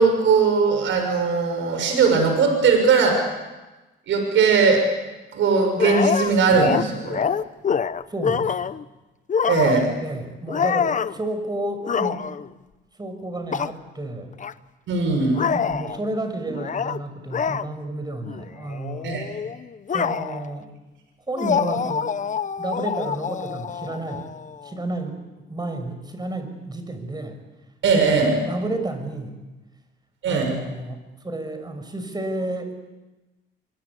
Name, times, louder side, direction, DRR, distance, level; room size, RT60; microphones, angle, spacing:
voice 1, 0.0-3.2 4.1-4.8 5.3-7.2 9.5-9.9 14.9-15.4 19.0-19.2 27.8-28.3 30.2-30.5, right 5 dB, 75° right, 4 dB, 6.6 m, -19 dB
sound 1, 5.8-8.8 9.3-10.0 10.5-11.2 11.8-12.5 13.5-13.7 14.4-14.5 15.3-16.0 16.5-17.0 17.3-17.7 18.3-18.4 18.7-20.5 21.4-24.7, left 7 dB, 40° left, 0.9 m, -25 dB
voice 2, 8.1-8.7 10.0-12.2 13.0-14.3 15.5-19.2 19.9-20.7 21.3-22.1 22.6-24.3 24.6-25.2 25.5-27.4 27.9-29.4 30.3-32.7, right 2 dB, 20° right, 7 dB, 6.1 m, -31 dB
24.5 x 24.0 x 8.4 m, 1.1 s
cardioid pair, 90°, 20 cm